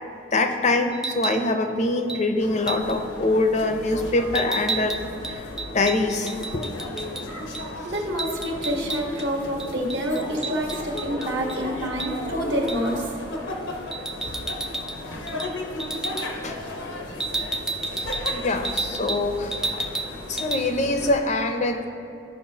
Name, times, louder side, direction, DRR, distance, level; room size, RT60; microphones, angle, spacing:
voice 1, 0.3-5.5 5.7-6.7 16.4-16.6 18.3-19.9 20.3-21.8, left 2 dB, 40° left, 6 dB, 0.6 m, -24 dB
sound 1, 0.9-1.4 2.1-2.2 2.7-3.0 4.3-7.2 7.5-7.7 7.9-9.3 9.6-11.6 12.0-12.1 12.7-12.9 13.9-15.0 15.3-15.5 15.8-16.3 17.2-19.2 19.5-20.1 20.4-20.6, right 3 dB, 5° right, 0.3 m, -31 dB
sound 2, 2.4-21.2, left 1 dB, 85° left, 1.0 m, -35 dB
voice 2, 7.8-13.2 14.2-14.3, equal, 70° right, -2 dB, 1.4 m, -27 dB
13.5 x 5.3 x 2.8 m, 2.6 s
head